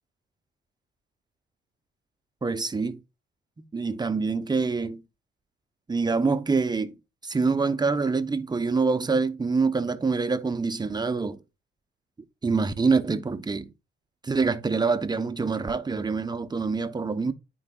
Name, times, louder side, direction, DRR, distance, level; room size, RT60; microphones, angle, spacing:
voice 1, 2.4-3.0 3.7-5.0 5.9-6.9 7.2-11.4 12.4-13.7 14.2-17.3, right 4 dB, 20° right, 0.8 m, -25 dB
13.0 x 4.7 x 2.3 m
cardioid pair, 90°, 20 cm